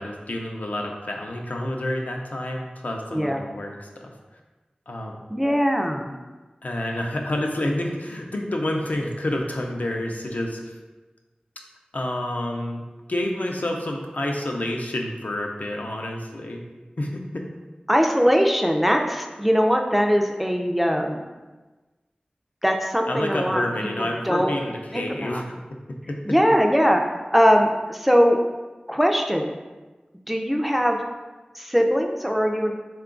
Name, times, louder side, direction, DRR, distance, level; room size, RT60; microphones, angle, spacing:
voice 1, 0.0-4.1 4.9-5.2 6.6-10.6 11.9-12.8 13.1-16.6 17.0-17.5 23.1-25.4 25.7-26.4, left 1 dB, 65° left, 1 dB, 0.5 m, -29 dB
voice 2, 3.1-3.4 5.3-6.1 17.9-21.2 22.6-23.7 24.0-24.6 24.9-25.4 26.3-27.0 27.3-28.4 28.9-29.5 30.3-31.0 31.6-32.7, equal, 5° right, 3 dB, 0.4 m, -21 dB
3.8 x 2.3 x 3.7 m, 1.2 s
wide cardioid pair, 40°, 3 cm